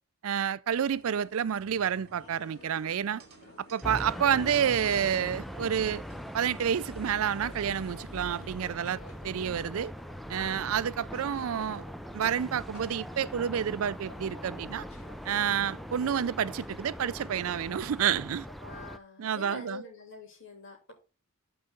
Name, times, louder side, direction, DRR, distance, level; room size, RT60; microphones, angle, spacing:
voice 1, 0.2-3.2 3.7-6.0 6.3-9.9 10.3-11.8 12.1-14.8 15.3-18.5 19.2-19.8, right 8 dB, 70° right, 0.4 m, -29 dB
sound 1, 0.7-8.5, right 2 dB, 45° right, 2.1 m, -58 dB
sound 2, 2.2-18.1, left 2 dB, 80° left, 2.9 m, -54 dB
sound 3, 3.8-19.0, equal, ahead, 0.4 m, -41 dB
voice 2, 10.4-10.7 15.4-15.6 18.6-20.9, left 2 dB, 60° left, 3.3 m, -45 dB
13.0 x 4.8 x 3.9 m
head